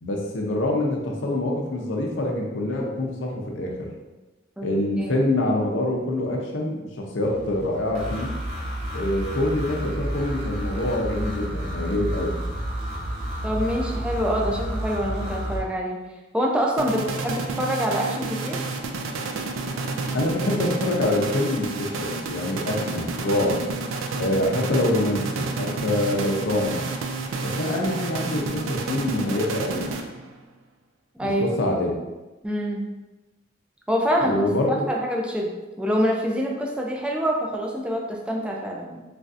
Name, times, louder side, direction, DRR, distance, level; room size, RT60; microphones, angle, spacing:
voice 1, 0.0-3.9 4.6-8.3 8.9-12.4 20.1-23.6 24.2-26.9 27.4-30.0 31.2-32.0 34.2-34.9, left 1 dB, 70° left, 0 dB, 0.6 m, -25 dB
sound 1, 7.2-15.6, right 1 dB, 35° right, 0.8 m, -30 dB
voice 2, 13.4-16.0 16.3-18.6 31.2-31.6 32.4-32.9 33.9-34.4 34.9-39.0, equal, 5° right, -1 dB, 0.3 m, -25 dB
sound 2, 16.8-30.4, right 3 dB, 85° right, 0.3 m, -30 dB
3.1 x 2.5 x 2.4 m, 1.1 s
head